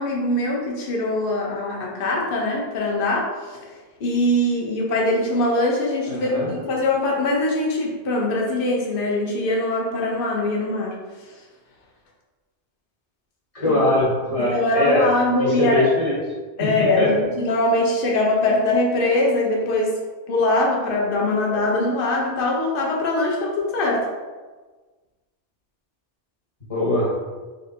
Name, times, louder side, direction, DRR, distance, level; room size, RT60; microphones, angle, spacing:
voice 1, 0.0-3.6 4.0-10.9 13.7-13.8 14.4-15.8 16.6-19.9 20.3-24.0, left 2 dB, 55° left, -2 dB, 0.9 m, -22 dB
voice 2, 6.1-6.5 13.5-15.1 15.4-16.2 16.6-17.1 26.7-27.2, left 1 dB, 30° left, -6 dB, 1.2 m, -22 dB
3.5 x 2.6 x 4.2 m, 1.3 s
omnidirectional pair, 1.2 m